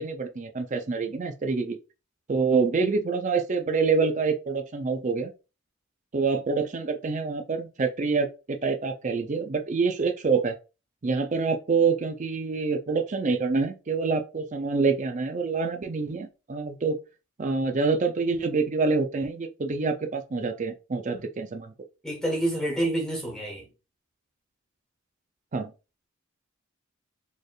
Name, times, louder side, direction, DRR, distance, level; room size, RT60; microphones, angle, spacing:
voice 1, 0.0-1.8 2.3-5.3 6.1-10.5 11.0-17.0 17.4-21.7 25.5-25.7, right 4 dB, 35° right, 0.5 m, -26 dB
voice 2, 22.0-23.7, right 1 dB, 5° left, 1.3 m, -28 dB
4.2 x 3.4 x 2.4 m
head